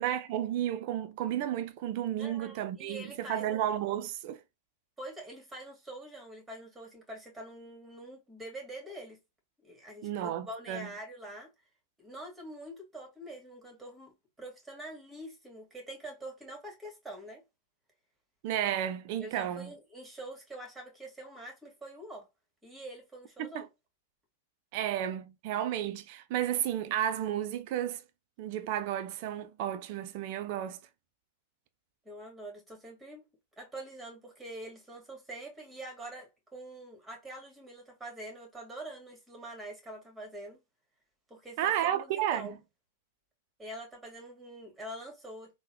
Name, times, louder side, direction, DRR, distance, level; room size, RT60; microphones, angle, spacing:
voice 1, 0.0-4.4 10.0-10.9 18.4-19.7 23.4-23.7 24.7-28.0 28.4-30.8 41.6-42.5, right 11 dB, 55° right, 0.5 m, -32 dB
voice 2, 2.2-3.6 5.0-9.2 9.6-11.5 12.0-17.4 19.2-22.3 22.6-23.7 32.1-33.2 33.6-40.6 41.3-42.6 43.6-45.6, right 1 dB, 10° right, 1.8 m, -45 dB
3.7 x 2.2 x 2.9 m
hypercardioid pair, 105°, 0 cm